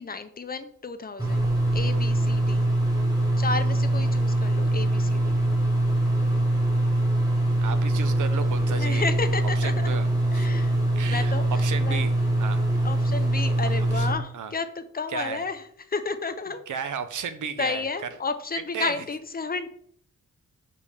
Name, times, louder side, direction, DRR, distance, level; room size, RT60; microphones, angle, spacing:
voice 1, 0.0-2.7 3.4-5.4 8.8-10.0 10.3-10.8 11.1-12.0 12.8-16.8 17.6-19.7, left 4 dB, 30° left, 10 dB, 0.5 m, -32 dB
sound 1, 1.2-14.1, right 1 dB, 10° right, 1.6 m, -23 dB
voice 2, 7.6-9.1 9.6-10.1 10.3-10.5 11.0-12.1 12.4-12.6 13.6-14.1 14.3-14.5 15.1-15.4 16.7-17.9 18.7-18.9, right 7 dB, 75° right, 11 dB, 0.7 m, -34 dB
6.9 x 5.3 x 3.3 m, 0.63 s
wide cardioid pair, 160°, 31 cm